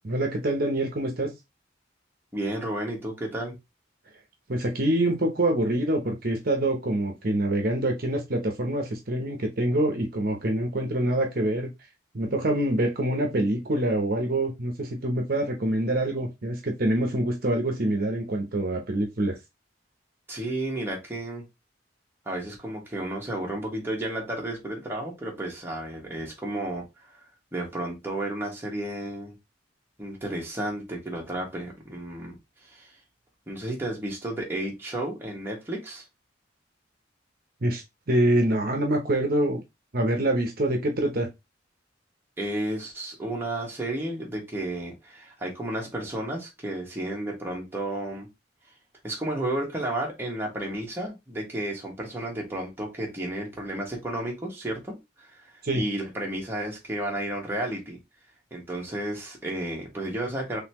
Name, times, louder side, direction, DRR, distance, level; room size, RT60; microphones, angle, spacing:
voice 1, 0.0-1.3 4.5-11.7 12.1-19.4 37.6-37.8 38.1-39.6 39.9-41.3 55.6-55.8, right 1 dB, 55° right, 0.9 m, -25 dB
voice 2, 2.3-3.6 20.3-21.4 22.2-27.2 27.5-29.3 30.0-32.4 32.6-32.9 33.5-36.0 42.4-48.3 49.0-58.0 58.5-60.6, right 1 dB, 10° right, 1.4 m, -32 dB
4.0 x 3.4 x 3.0 m
head